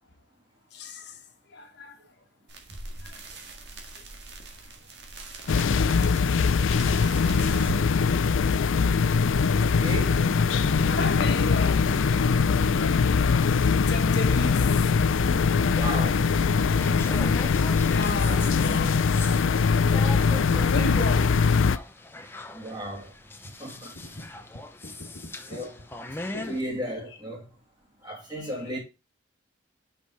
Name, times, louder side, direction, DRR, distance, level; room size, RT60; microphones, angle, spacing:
voice 1, 0.7-1.2 1.5-2.0 3.0-3.2 10.9-12.0 13.9-14.8 17.7-19.0 20.6-21.4 23.9-24.3 24.8-25.6 28.1-28.5, left 2 dB, 60° left, 1.5 m, -34 dB
sound 1, 2.5-7.8, right 2 dB, 60° right, 1.8 m, -40 dB
sound 2, 5.5-21.8, left 5 dB, 90° left, 0.4 m, -22 dB
voice 2, 9.6-10.3 15.7-16.2 22.5-23.1 23.6-24.2 25.5-25.8 26.3-27.5 28.0-28.8, equal, 25° right, 2.7 m, -34 dB
sound 3, 16.7-26.6, left 2 dB, 10° left, 0.7 m, -40 dB
6.2 x 5.6 x 4.8 m
head